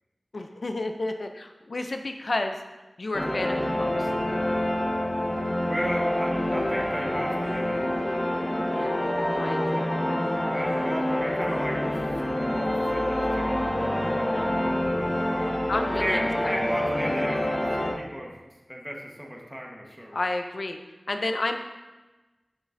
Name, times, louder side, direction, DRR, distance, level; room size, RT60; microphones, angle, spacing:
voice 1, 0.3-2.6 3.0-4.1 8.7-9.0 9.4-9.9 14.3-14.6 15.7-16.6 20.1-20.8 21.1-21.6, left 2 dB, 65° left, 6 dB, 0.4 m, -31 dB
sound 1, 3.1-17.9, left 1 dB, 50° left, 1.3 m, -27 dB
voice 2, 5.7-8.0 10.5-12.0 12.4-13.6 15.3-15.7 16.0-18.3 18.7-20.2, equal, 5° right, -1 dB, 1.1 m, -35 dB
6.3 x 6.3 x 2.5 m, 1.2 s
wide cardioid pair, 65°, 0 cm